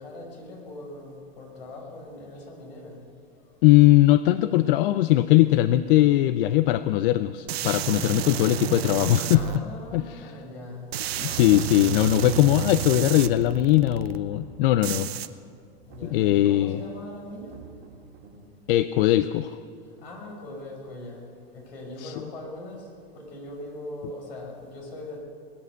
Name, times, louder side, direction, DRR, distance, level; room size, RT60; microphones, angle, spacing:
voice 1, 0.0-3.0 9.3-10.9 15.9-17.6 20.0-21.2 21.5-22.9 23.1-25.2, left 1 dB, 80° left, 0 dB, 5.5 m, -40 dB
voice 2, 3.6-9.4 9.9-10.3 11.2-15.1 16.1-16.8 18.7-19.5 22.0-22.1, left 15 dB, 65° left, 13 dB, 0.6 m, -20 dB
sound 1, 7.5-9.6 10.9-14.2 14.8-15.3, right 11 dB, 80° right, 0.8 m, -31 dB
sound 2, 11.1-12.2 12.5-13.8 14.1-15.4 15.7-18.6, right 5 dB, 55° right, 2.3 m, -50 dB
21.0 x 8.7 x 7.9 m, 2.4 s
hypercardioid pair, 110°, 30 cm